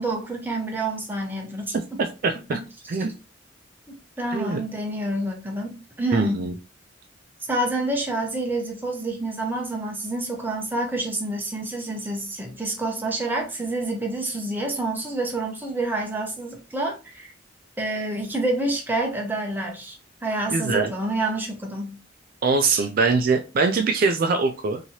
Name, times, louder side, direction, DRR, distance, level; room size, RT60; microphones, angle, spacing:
voice 1, 0.0-2.0 2.5-2.6 3.9-6.4 7.5-17.3 17.8-20.0 20.2-22.0 22.7-22.9, right 2 dB, 10° right, 0.7 m, -28 dB
voice 2, 2.0-2.6 2.9-3.1 4.3-4.6 6.1-6.5 20.5-20.9 22.4-24.8, right 4 dB, 45° right, 0.3 m, -23 dB
3.0 x 2.8 x 2.7 m
head